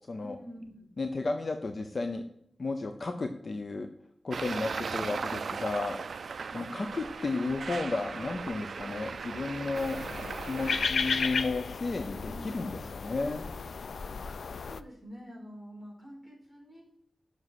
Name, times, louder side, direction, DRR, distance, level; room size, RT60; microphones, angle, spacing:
voice 1, 0.1-0.9 4.4-5.2 6.5-6.8 12.2-12.8 14.2-16.8, equal, 5° left, -4 dB, 4.5 m, -47 dB
voice 2, 1.0-2.2 2.6-3.9 4.2-6.0 6.2-10.0 10.4-13.5, left 3 dB, 45° left, 6 dB, 0.7 m, -33 dB
Traffic noise roadway noise, 4.3-10.9, right 5 dB, 75° right, 0.3 m, -37 dB
sound 1, 9.8-14.8, left 5 dB, 80° left, 0.4 m, -34 dB
7.5 x 6.3 x 7.9 m, 0.74 s
wide cardioid pair, 125°, 0 cm